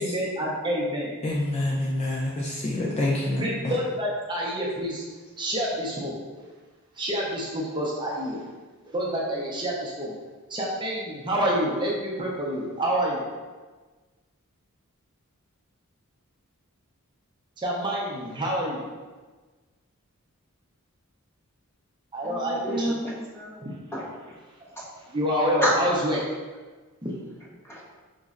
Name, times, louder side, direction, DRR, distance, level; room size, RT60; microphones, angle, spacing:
voice 1, 0.0-1.1 3.4-5.0 5.4-6.4 7.0-8.4 8.9-10.1 10.5-13.3 17.6-18.8 22.1-22.9 23.6-23.7 25.1-26.2 27.0-27.1, equal, 20° right, -4 dB, 0.6 m, -27 dB
voice 2, 1.2-3.7, left 1 dB, 30° left, -3 dB, 0.4 m, -27 dB
voice 3, 22.3-23.5 23.9-24.1 24.8-24.9 25.6-25.8 27.6-27.8, equal, 10° left, -6 dB, 0.8 m, -29 dB
5.2 x 3.0 x 2.4 m, 1.3 s
head